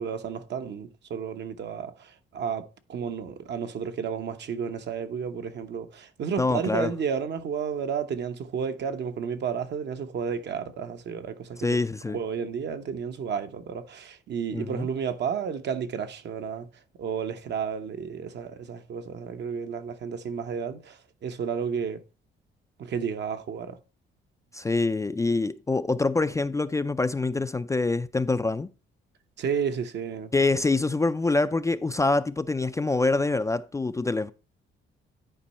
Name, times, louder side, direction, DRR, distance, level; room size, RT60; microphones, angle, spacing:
voice 1, 0.0-11.8 12.1-16.7 17.0-22.0 22.8-23.8 29.4-30.4, right 7 dB, 60° right, 0.9 m, -32 dB
voice 2, 6.4-6.9 11.6-12.2 14.5-14.9 24.5-28.7 30.3-34.3, left 3 dB, 15° left, 0.3 m, -25 dB
10.0 x 4.5 x 4.2 m
cardioid pair, 90°, 20 cm